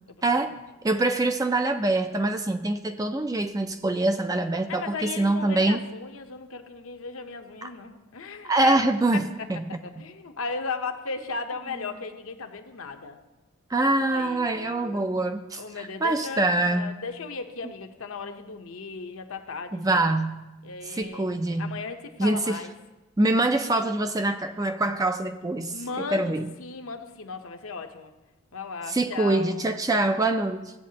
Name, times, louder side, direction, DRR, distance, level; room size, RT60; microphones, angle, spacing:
voice 1, 0.1-0.5 4.7-8.8 9.1-13.2 14.0-15.1 15.5-20.2 20.6-22.7 25.7-28.1 28.5-29.5, left 4 dB, 70° left, 5 dB, 0.8 m, -36 dB
voice 2, 0.8-5.8 7.6-7.7 8.5-10.1 13.7-15.6 16.0-17.0 19.7-20.5 20.9-21.8 22.2-22.6 23.2-26.4 28.9-30.7, right 2 dB, 15° right, 8 dB, 0.4 m, -25 dB
15.5 x 8.2 x 2.8 m, 1.1 s
head